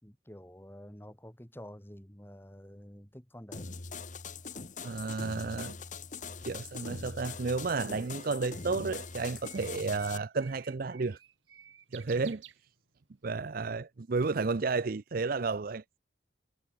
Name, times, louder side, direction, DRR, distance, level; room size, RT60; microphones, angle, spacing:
voice 1, 0.0-3.7, equal, 10° left, 2.7 m, -49 dB
sound 1, 3.5-10.2, left 4 dB, 40° left, 1.5 m, -42 dB
voice 2, 4.8-5.8 6.5-11.2 11.9-12.4 13.2-16.0, right 4 dB, 50° right, 0.5 m, -32 dB
Bird, 7.0-13.2, right 10 dB, 80° right, 3.6 m, -55 dB
head